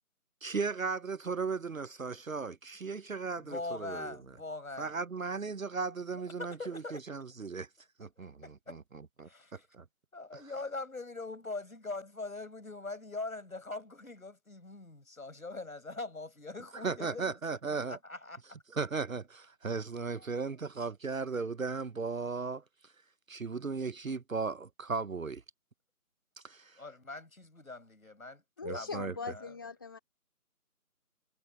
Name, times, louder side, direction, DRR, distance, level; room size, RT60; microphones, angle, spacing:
voice 1, 0.4-4.2 4.8-7.7 8.0-9.8 10.3-10.5 16.7-18.0 18.7-22.6 23.3-25.4 26.4-26.8 28.6-29.1, right 4 dB, 65° right, 0.8 m, -36 dB
voice 2, 3.4-4.9 6.4-7.0 8.4-8.8 9.3-9.6 10.1-18.4 20.2-20.4 26.7-28.4 28.7-29.5, left 3 dB, 65° left, 6.0 m, -42 dB
voice 3, 28.6-30.0, left 4 dB, 15° left, 2.9 m, -40 dB
figure-of-eight pair, 175°, 44 cm